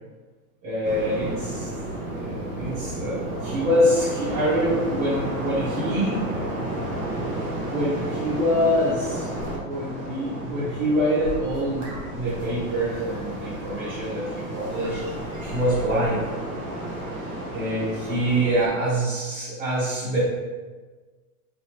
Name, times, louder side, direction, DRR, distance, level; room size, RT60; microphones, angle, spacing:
voice 1, 0.6-1.7 2.0-6.3 7.7-15.0 15.4-16.3 17.5-20.2, equal, 60° right, -9 dB, 1.3 m, -25 dB
pacifica-linda-mar-ocean, 0.8-18.7, right 1 dB, 20° right, 0.5 m, -32 dB
4.1 x 2.6 x 3.0 m, 1.4 s
supercardioid pair, 150°, 47 cm